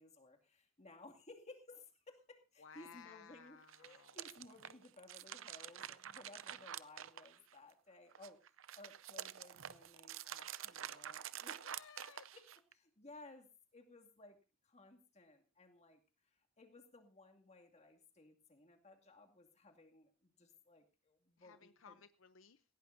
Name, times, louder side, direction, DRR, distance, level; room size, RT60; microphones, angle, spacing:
voice 1, 0.0-8.4 8.7-11.7 12.3-12.4 12.7-14.4 14.6-16.0 16.6-22.0, left 2 dB, 35° left, 3 dB, 2.4 m, -59 dB
voice 2, 2.6-4.2 11.6-12.3 21.4-22.6, left 6 dB, 75° left, 12 dB, 0.7 m, -59 dB
sound 1, 3.6-7.7 8.1-12.7, right 10 dB, 75° right, 0.6 m, -48 dB
18.5 x 17.0 x 2.7 m, 0.30 s
head